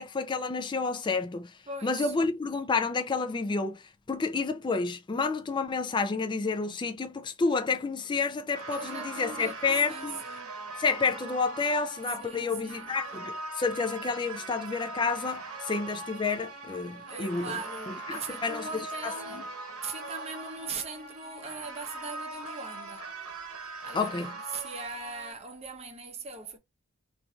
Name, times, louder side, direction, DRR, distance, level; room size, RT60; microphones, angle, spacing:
voice 1, 0.0-1.5 1.8-10.2 10.8-17.6 17.9-19.4 23.9-24.3, left 4 dB, 20° left, 0.3 m, -30 dB
voice 2, 1.7-2.1 8.7-10.5 12.2-13.0 17.0-23.1 23.8-26.6, right 4 dB, 30° right, 0.7 m, -40 dB
sound 1, 8.6-25.3, right 3 dB, 85° right, 1.0 m, -41 dB
3.1 x 2.5 x 2.3 m
head